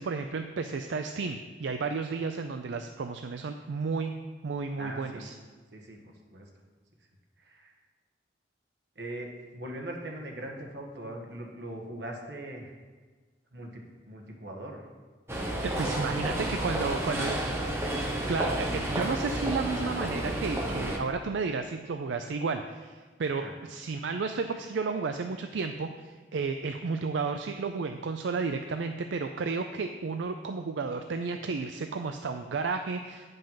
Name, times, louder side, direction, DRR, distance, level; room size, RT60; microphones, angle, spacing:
voice 1, 0.0-4.1 4.4-5.3 15.6-17.3 18.3-33.3, right 4 dB, 85° right, 7 dB, 0.4 m, -32 dB
voice 2, 4.8-5.3 5.7-6.5 7.4-7.7 8.9-12.8 13.5-14.9 15.3-16.1 16.5-17.4 23.3-23.5, right 1 dB, 70° right, 1 dB, 1.4 m, -41 dB
sound 1, 15.3-21.0, right 1 dB, 15° right, 0.9 m, -31 dB
9.0 x 5.4 x 5.7 m, 1.4 s
head